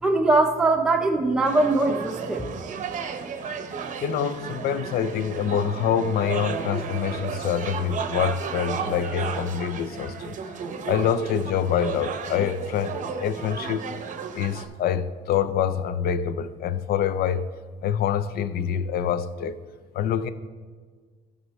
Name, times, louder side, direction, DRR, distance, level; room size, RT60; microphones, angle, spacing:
voice 1, 0.0-2.5, right 2 dB, 5° right, 0.6 m, -21 dB
sound 1, 1.4-14.7, right 6 dB, 50° right, 0.7 m, -33 dB
voice 2, 4.0-10.4 10.9-13.9 14.3-17.5 17.8-19.6 19.9-20.3, left 8 dB, 65° left, 0.5 m, -26 dB
13.0 x 5.5 x 3.2 m
cardioid pair, 110°, 17 cm